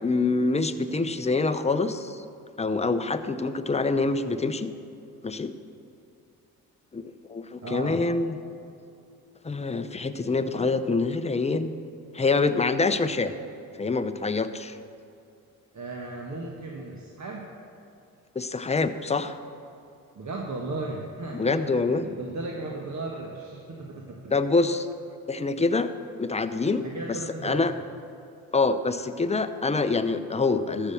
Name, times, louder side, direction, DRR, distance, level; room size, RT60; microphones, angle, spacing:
voice 1, 0.0-2.2 2.6-4.7 5.2-5.5 6.9-8.4 9.4-11.7 12.1-13.4 13.8-14.8 18.3-19.4 21.3-22.1 24.3-24.9 25.3-25.9 26.2-27.7 28.5-30.9, left 3 dB, 15° left, 10 dB, 0.7 m, -26 dB
voice 2, 7.6-8.0 15.7-17.5 20.1-24.4 26.8-27.7, right 2 dB, 45° right, -1 dB, 1.4 m, -36 dB
13.0 x 5.9 x 6.9 m, 2.6 s
hypercardioid pair, 50°, 40 cm